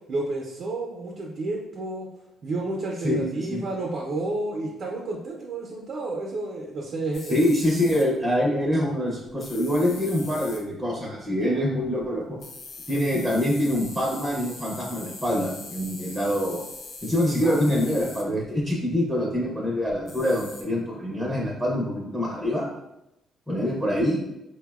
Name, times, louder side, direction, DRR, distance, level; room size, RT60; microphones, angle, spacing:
voice 1, 0.1-2.1 2.4-7.4 17.4-17.6, right 2 dB, 55° right, -2 dB, 0.5 m, -30 dB
voice 2, 3.0-3.6 7.3-12.4 12.9-16.6 17.0-22.7 23.5-24.2, left 1 dB, 5° right, -3 dB, 0.6 m, -25 dB
sound 1, 7.1-8.2 9.3-10.6 12.0-12.1 12.4-18.6 19.3-19.4 19.9-20.6, left 3 dB, 65° left, 0.4 m, -42 dB
3.9 x 2.0 x 2.3 m, 0.88 s
cardioid pair, 90°, 0 cm